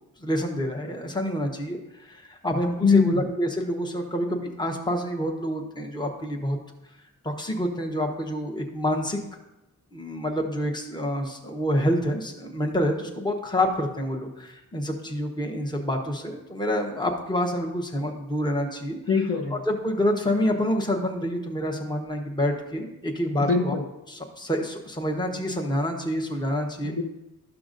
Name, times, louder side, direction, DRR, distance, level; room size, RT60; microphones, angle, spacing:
voice 1, 0.2-6.6 7.2-9.2 9.9-19.0 19.5-23.8 24.1-26.9, equal, 10° left, 1 dB, 1.1 m, -27 dB
voice 2, 2.8-3.2 19.1-19.6 23.4-23.8 26.8-27.0, left 5 dB, 35° left, 0 dB, 1.0 m, -22 dB
12.0 x 5.9 x 2.6 m, 0.96 s
cardioid pair, 50°, 37 cm